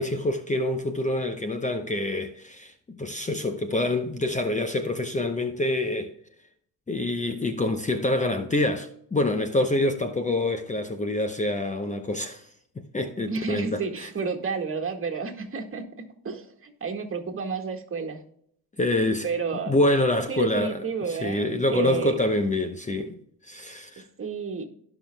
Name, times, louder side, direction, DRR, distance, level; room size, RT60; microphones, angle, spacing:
voice 1, 0.0-6.1 6.9-12.5 12.8-14.1 18.8-19.3 19.7-23.2 23.4-24.0, left 1 dB, 20° left, 0.8 m, -26 dB
voice 2, 13.3-18.2 19.2-19.8 20.3-22.2 24.2-24.6, right 5 dB, 35° right, 1.8 m, -31 dB
17.0 x 5.8 x 2.3 m
cardioid pair, 95°, 38 cm